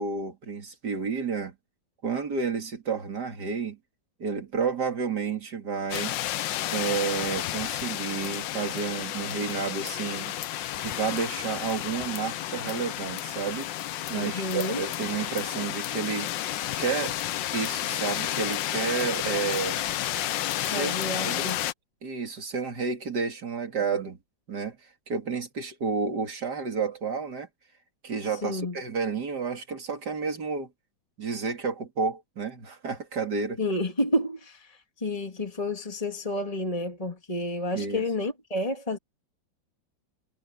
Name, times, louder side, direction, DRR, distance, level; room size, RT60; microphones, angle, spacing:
voice 1, 0.0-1.5 2.0-3.8 4.2-6.2 6.7-10.4 10.8-13.7 14.1-16.3 16.8-17.2 17.5-19.8 20.6-21.5 22.0-24.2 24.5-24.8 25.1-27.5 28.0-30.7 31.2-33.6 37.7-38.0, right 5 dB, 55° right, 3.3 m, -31 dB
sound 1, 5.9-21.7, left 13 dB, 75° left, 1.4 m, -31 dB
voice 2, 14.1-14.8 20.7-21.6 28.2-28.8 33.6-39.0, left 1 dB, 15° left, 3.1 m, -30 dB
omnidirectional pair, 2.1 m